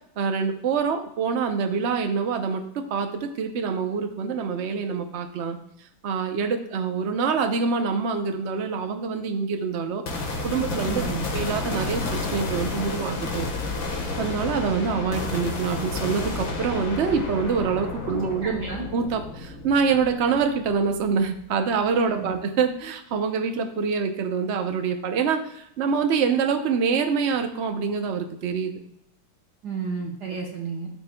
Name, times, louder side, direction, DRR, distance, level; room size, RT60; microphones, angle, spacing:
voice 1, 0.2-2.6 2.9-5.6 6.0-10.0 10.4-11.0 11.3-13.5 14.2-18.6 18.9-28.8, right 5 dB, 80° right, 5 dB, 0.6 m, -25 dB
sound 1, 10.1-21.4, left 2 dB, 70° left, 2.2 m, -31 dB
voice 2, 10.9-11.2 18.0-18.9 22.1-22.3 29.6-30.9, right 4 dB, 55° right, 0 dB, 1.5 m, -32 dB
13.0 x 6.3 x 2.3 m, 0.77 s
omnidirectional pair, 2.3 m